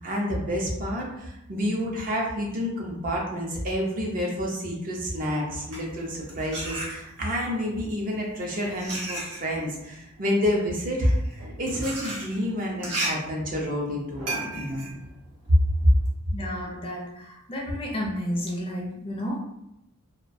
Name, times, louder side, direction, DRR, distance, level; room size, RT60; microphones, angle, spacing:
voice 1, 0.0-14.9, equal, 40° right, -2 dB, 0.5 m, -29 dB
sound 1, 5.5-7.4 8.2-16.1, right 2 dB, 90° right, 0.9 m, -35 dB
voice 2, 16.3-19.4, equal, 25° left, -2 dB, 0.4 m, -32 dB
2.2 x 2.1 x 2.5 m, 0.83 s
head